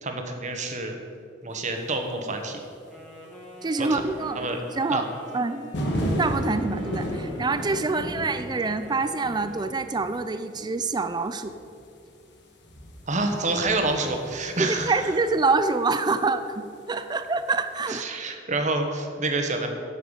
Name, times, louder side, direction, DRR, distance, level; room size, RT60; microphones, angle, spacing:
voice 1, 0.0-0.9 1.4-2.6 3.8-4.0 4.3-4.6 4.9-5.0 13.1-15.1 17.9-19.7, right 2 dB, 40° right, 4 dB, 1.2 m, -27 dB
Wind instrument woodwind instrument, 2.8-10.0, left 1 dB, 5° left, 1.6 m, -45 dB
voice 2, 3.6-4.4 4.7-5.1 5.3-5.7 6.0-11.5 14.6-18.1, right 3 dB, 20° right, 10 dB, 0.4 m, -26 dB
sound 1, 5.7-15.9 17.3-17.5, equal, 60° left, 1.5 m, -33 dB
11.0 x 5.8 x 7.1 m, 2.4 s
head